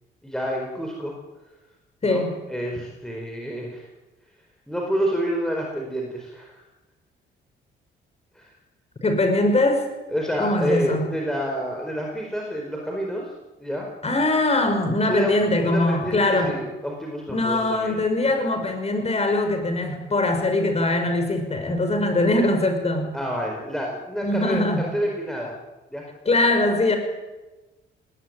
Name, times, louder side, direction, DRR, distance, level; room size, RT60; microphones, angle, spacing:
voice 1, 0.2-1.1 2.0-3.9 4.7-6.6 8.3-8.5 10.1-13.3 13.6-13.9 15.1-15.3 15.6-17.9 18.3-18.7 23.1-25.6 25.9-26.1, equal, 5° left, 0 dB, 4.6 m, -28 dB
voice 2, 2.0-2.3 9.0-9.8 10.4-11.1 14.0-16.5 17.3-23.1 24.2-24.9 26.3-27.0, left 2 dB, 30° left, 6 dB, 6.0 m, -22 dB
19.5 x 19.0 x 9.4 m, 1.1 s
cardioid pair, 90°, 20 cm